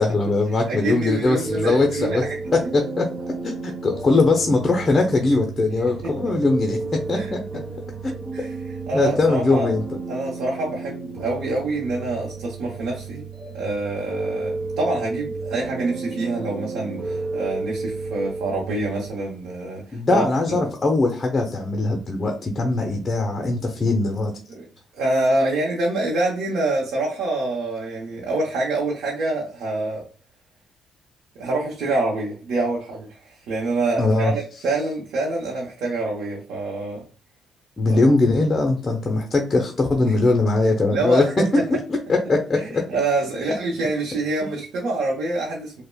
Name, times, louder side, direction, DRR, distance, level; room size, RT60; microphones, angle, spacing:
voice 1, 0.0-2.2 2.5-3.1 3.6-7.4 8.0-8.1 8.9-9.8 19.9-24.3 34.0-34.3 37.8-42.9, left 3 dB, 30° left, 2 dB, 0.6 m, -21 dB
voice 2, 0.7-2.4 5.9-6.1 7.1-7.3 8.3-9.7 10.1-13.3 13.5-20.6 24.6-24.7 24.9-30.1 31.3-37.0 37.9-38.0 40.9-41.7 42.5-45.8, right 2 dB, 80° right, -2 dB, 0.8 m, -26 dB
sound 1, 1.4-19.1, right 3 dB, 50° right, 0.7 m, -32 dB
5.2 x 2.1 x 2.2 m, 0.40 s
cardioid pair, 90°, 0 cm